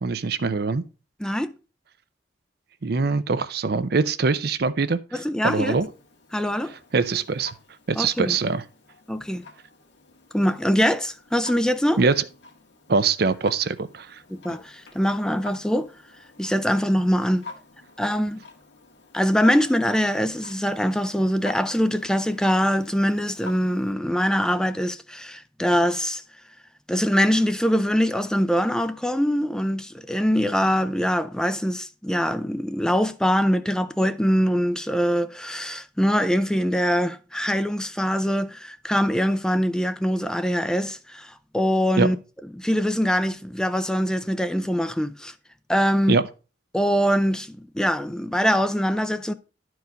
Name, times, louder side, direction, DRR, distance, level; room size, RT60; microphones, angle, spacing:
voice 1, 0.0-0.8 2.8-5.9 6.9-7.5 7.9-8.6 12.0-12.2 12.9-14.2 42.0-42.1 46.1-46.3, right 4 dB, 60° right, 0.6 m, -23 dB
voice 2, 1.2-1.5 5.1-5.8 6.3-6.7 8.0-8.4 9.1-9.5 10.3-12.0 14.3-15.9 16.4-17.4 18.0-18.4 19.1-26.2 26.9-42.2 42.6-45.3 45.7-46.2 46.7-49.3, equal, 5° left, 0.4 m, -23 dB
Clock, 5.4-23.9, left 3 dB, 80° left, 1.8 m, -48 dB
11.0 x 4.7 x 5.1 m
head